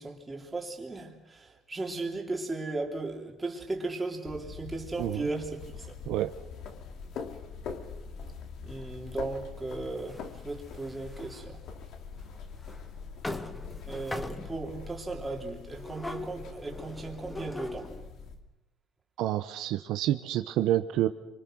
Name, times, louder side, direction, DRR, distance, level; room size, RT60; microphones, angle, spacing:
voice 1, 0.0-5.9 8.6-11.6 13.8-17.9, right 3 dB, 10° right, 3.2 m, -36 dB
sound 1, 4.3-18.3, left 5 dB, 50° left, 2.7 m, -43 dB
sound 2, 10.0-11.4 12.2-12.3 12.6-12.8 13.2-14.7 15.8-18.1, left 2 dB, 10° left, 1.1 m, -41 dB
voice 2, 19.2-21.1, right 13 dB, 65° right, 1.0 m, -28 dB
28.5 x 25.5 x 6.4 m
cardioid pair, 170°, 0 cm